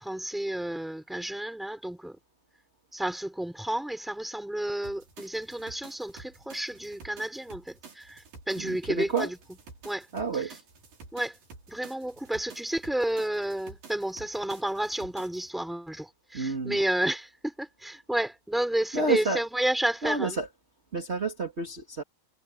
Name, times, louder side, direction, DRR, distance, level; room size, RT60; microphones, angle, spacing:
voice 1, 0.0-2.2 2.9-9.4 9.8-10.1 10.3-10.5 11.1-11.4 11.7-20.4, right 1 dB, ahead, 3.2 m, -31 dB
sound 1, 4.8-15.5, right 4 dB, 60° right, 6.6 m, -50 dB
voice 2, 8.6-9.3 10.1-10.5 16.3-16.8 18.9-19.4 20.0-20.5 20.9-22.0, right 3 dB, 25° right, 1.6 m, -29 dB
omnidirectional pair, 4.5 m